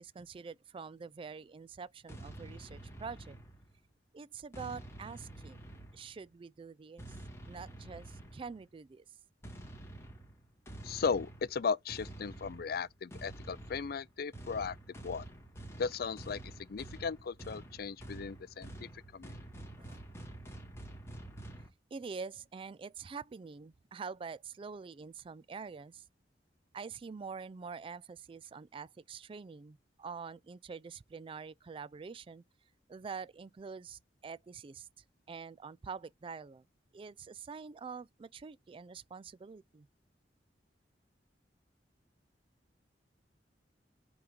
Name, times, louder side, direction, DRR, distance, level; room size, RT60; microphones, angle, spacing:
voice 1, 0.0-3.4 4.1-5.6 5.9-7.2 7.5-9.0 19.8-20.0 21.9-26.0 26.7-32.4 32.9-34.9 35.3-36.6 36.9-39.9, right 5 dB, 30° right, 0.3 m, -46 dB
sound 1, 2.1-3.8 4.5-6.3 7.0-8.6 9.4-21.7, right 1 dB, 15° left, 2.2 m, -48 dB
voice 2, 10.8-14.8 15.0-15.3 15.8-16.4 16.7-18.7 19.1-19.4, left 5 dB, 60° left, 0.4 m, -36 dB
5.7 x 3.9 x 5.0 m
head